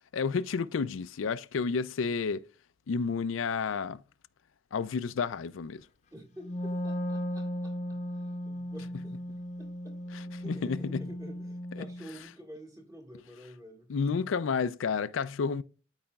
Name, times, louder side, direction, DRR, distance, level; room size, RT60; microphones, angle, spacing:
voice 1, 0.1-2.4 2.9-4.0 4.7-5.8 10.5-11.0 13.9-15.6, left 5 dB, 90° left, 0.4 m, -30 dB
voice 2, 6.1-13.9 14.2-14.6, equal, 20° right, 1.6 m, -50 dB
Wind instrument woodwind instrument, 6.4-12.1, equal, 35° left, 0.8 m, -36 dB
13.0 x 4.8 x 2.3 m
head